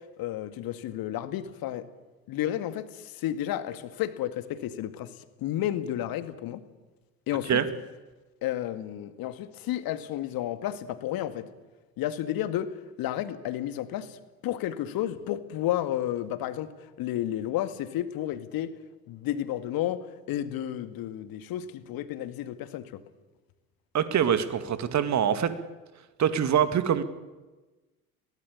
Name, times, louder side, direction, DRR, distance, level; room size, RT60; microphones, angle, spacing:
voice 1, 0.2-1.9 2.3-5.1 5.4-6.6 7.3-7.6 8.4-11.5 12.0-14.2 14.4-16.7 17.0-18.7 19.1-23.0, left 12 dB, 50° left, 11 dB, 2.1 m, -32 dB
voice 2, 23.9-25.5 26.2-27.0, right 8 dB, 35° right, 11 dB, 2.2 m, -24 dB
22.5 x 18.0 x 8.5 m, 1.2 s
figure-of-eight pair, 65°, 45 cm